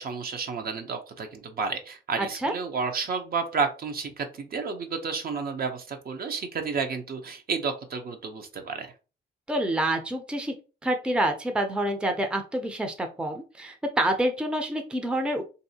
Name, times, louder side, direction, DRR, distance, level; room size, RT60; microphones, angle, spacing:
voice 1, 0.0-8.9, right 5 dB, 50° right, 6 dB, 0.7 m, -31 dB
voice 2, 2.2-2.5 9.5-10.5 10.8-15.4, right 1 dB, 5° right, 5 dB, 0.5 m, -27 dB
3.1 x 2.6 x 2.7 m, 0.34 s
cardioid pair, 90°, 20 cm